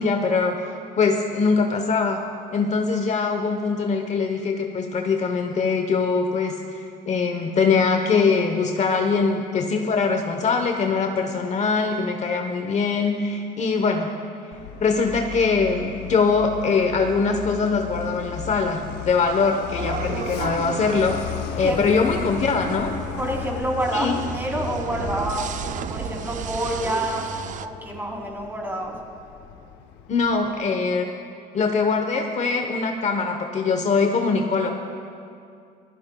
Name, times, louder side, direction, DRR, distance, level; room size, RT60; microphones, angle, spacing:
voice 1, 0.0-2.2 2.5-6.5 7.0-14.1 14.8-21.2 21.6-22.9 23.9-24.2 30.1-31.0 31.5-34.7, left 4 dB, 45° left, 4 dB, 1.0 m, -22 dB
Truck, 14.5-30.7, left 8 dB, 85° left, 0.7 m, -36 dB
sound 1, 19.8-27.7, right 9 dB, 50° right, 0.5 m, -34 dB
voice 2, 23.2-25.5 25.9-27.2 27.6-28.9, right 1 dB, 10° right, -1 dB, 3.0 m, -27 dB
25.0 x 15.5 x 2.3 m, 2.4 s
cardioid pair, 110°, 17 cm